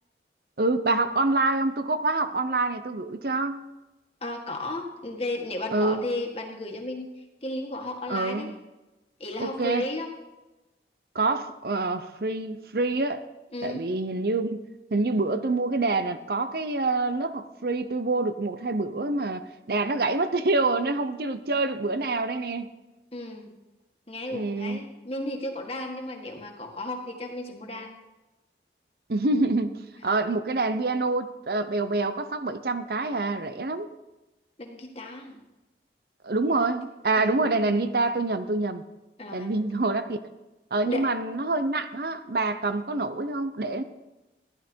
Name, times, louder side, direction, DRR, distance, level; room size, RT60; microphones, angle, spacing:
voice 1, 0.6-3.7 5.7-6.0 8.1-8.5 9.4-9.9 11.1-13.2 13.6-14.6 14.9-22.7 24.3-24.8 29.1-33.9 36.2-38.8 39.3-40.2 40.7-43.8, right 2 dB, 55° right, 10 dB, 0.7 m, -26 dB
voice 2, 4.2-8.5 9.2-10.1 13.5-13.8 23.1-23.5 24.1-28.0 34.6-35.4 37.1-37.5 39.2-39.5 40.8-41.1, left 2 dB, 35° left, 2 dB, 1.8 m, -34 dB
15.0 x 11.0 x 4.5 m, 1.0 s
head